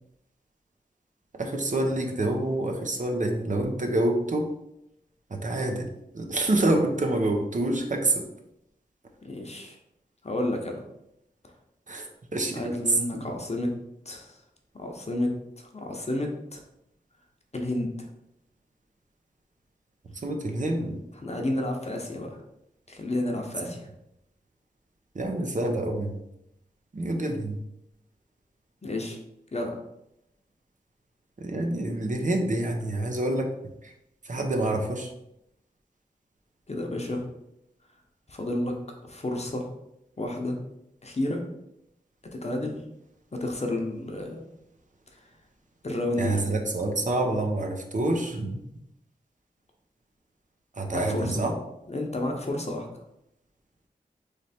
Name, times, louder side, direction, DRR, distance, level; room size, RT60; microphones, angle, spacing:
voice 1, 1.4-4.5 5.3-5.9 6.1-8.3 11.9-12.7 13.1-13.2 20.2-21.0 23.6-23.7 25.1-26.1 26.9-27.6 31.4-33.5 33.8-33.9 34.2-35.1 46.2-48.6 50.8-51.5, right 1 dB, 50° right, 2 dB, 0.7 m, -27 dB
voice 2, 9.2-9.8 10.2-10.8 12.5-14.4 14.7-16.6 17.5-18.1 21.2-22.4 22.9-23.9 28.8-29.2 29.5-29.8 36.7-37.3 38.3-39.7 40.2-40.6 41.0-41.4 42.3-42.8 43.3-44.5 45.8-46.4 50.9-51.4 51.9-52.9, left 1 dB, 40° left, 2 dB, 0.8 m, -31 dB
3.3 x 3.1 x 4.3 m, 0.83 s
cardioid pair, 50°, 16 cm